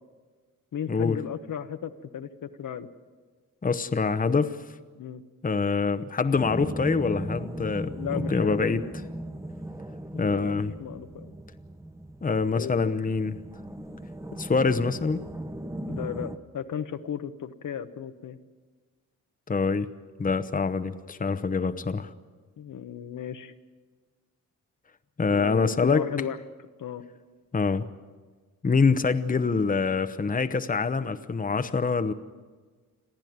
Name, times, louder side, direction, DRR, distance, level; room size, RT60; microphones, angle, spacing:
voice 1, 0.7-2.9 5.0-5.2 7.8-8.8 10.1-11.3 12.5-13.0 15.9-18.4 22.6-23.5 25.3-26.4 26.8-27.0, left 8 dB, 65° left, 8 dB, 1.2 m, -35 dB
voice 2, 3.6-4.6 5.4-8.8 10.2-10.7 12.2-13.4 14.3-15.2 19.5-19.9 20.2-22.1 25.2-26.1 27.5-27.9 28.6-32.1, left 4 dB, 25° left, 10 dB, 0.9 m, -25 dB
sound 1, 6.3-16.4, right 1 dB, 10° right, 1.2 m, -37 dB
29.5 x 10.5 x 9.4 m, 1.4 s
cardioid pair, 80°, 33 cm